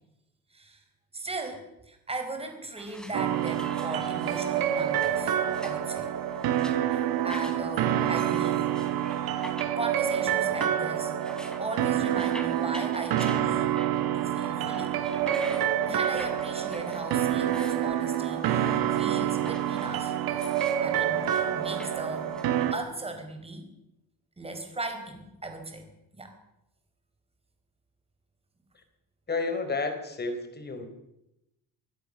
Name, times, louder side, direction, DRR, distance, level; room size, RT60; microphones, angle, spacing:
voice 1, 1.1-1.6 1.9-5.3 5.6-6.1 6.9-8.7 9.8-11.1 11.6-13.7 14.1-14.9 15.9-20.1 20.8-22.3 22.7-23.7 24.4-25.8 26.1-26.3, right 2 dB, 15° right, 6 dB, 4.6 m, -37 dB
sound 1, 2.8-22.7, equal, ahead, 3.7 m, -47 dB
sound 2, 3.1-22.7, right 10 dB, 70° right, 2.0 m, -27 dB
voice 2, 29.3-30.9, left 3 dB, 25° left, 7 dB, 4.3 m, -31 dB
24.5 x 16.5 x 6.6 m, 0.87 s
cardioid pair, 140°, 37 cm